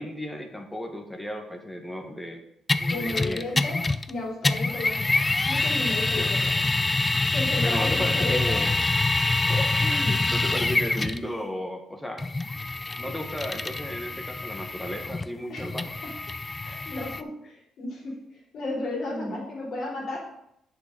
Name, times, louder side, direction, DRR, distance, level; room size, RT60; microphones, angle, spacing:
voice 1, 0.0-2.4 2.8-3.5 6.1-6.6 7.6-8.7 9.5-12.2 13.0-15.9 19.0-19.4, equal, 5° left, 4 dB, 1.4 m, -34 dB
sound 1, 2.7-4.1 4.4-11.3 12.2-17.2, left 3 dB, 20° left, 0.4 m, -26 dB
voice 2, 2.9-6.4 7.3-8.8 15.5-15.7 16.0-16.1 16.6-20.2, left 2 dB, 70° left, -4 dB, 4.0 m, -34 dB
8.1 x 6.8 x 5.4 m, 0.78 s
cardioid pair, 90°, 0 cm